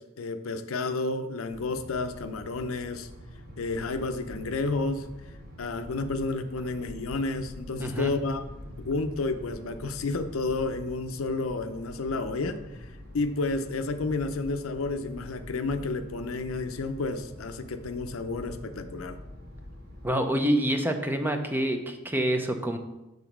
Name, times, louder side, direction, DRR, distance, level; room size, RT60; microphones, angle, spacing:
voice 1, 0.0-3.1 3.6-5.1 5.6-8.5 8.8-12.6 13.1-19.2, left 3 dB, 75° left, 9 dB, 0.6 m, -31 dB
sound 1, 1.5-20.1, left 1 dB, 85° right, 2.3 m, -45 dB
voice 2, 7.8-8.1 20.0-22.8, right 1 dB, 10° right, 5 dB, 0.6 m, -27 dB
7.1 x 3.9 x 5.9 m, 0.97 s
head